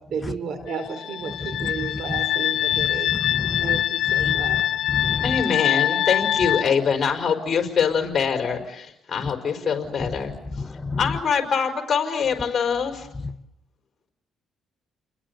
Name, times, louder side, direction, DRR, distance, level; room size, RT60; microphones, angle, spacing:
voice 1, 0.1-3.1 3.6-4.6 9.6-9.7, right 5 dB, 65° right, 10 dB, 4.7 m, -33 dB
sound 1, 0.7-6.6, left 11 dB, 80° left, 1.5 m, -24 dB
voice 2, 1.6-2.2 2.7-4.6 4.9-5.4 9.2-9.3 10.5-11.1 13.2-13.3, left 3 dB, 20° left, 9 dB, 1.4 m, -31 dB
voice 3, 5.2-10.3 11.0-13.1, left 6 dB, 45° left, 4 dB, 5.1 m, -24 dB
30.0 x 21.5 x 8.2 m, 0.80 s
cardioid pair, 90°, 0 cm